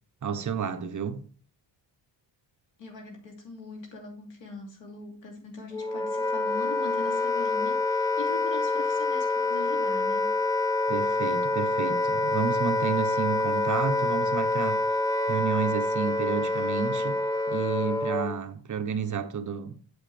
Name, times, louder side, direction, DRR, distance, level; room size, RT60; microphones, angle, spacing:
voice 1, 0.2-1.2 10.9-15.0 15.3-17.2 17.5-19.7, right 7 dB, 40° right, 0.9 m, -31 dB
voice 2, 2.8-10.3, left 3 dB, 85° left, 2.9 m, -41 dB
Wind instrument woodwind instrument, 5.7-18.4, left 2 dB, 10° left, 0.6 m, -27 dB
8.2 x 7.4 x 3.3 m
cardioid pair, 125°, 44 cm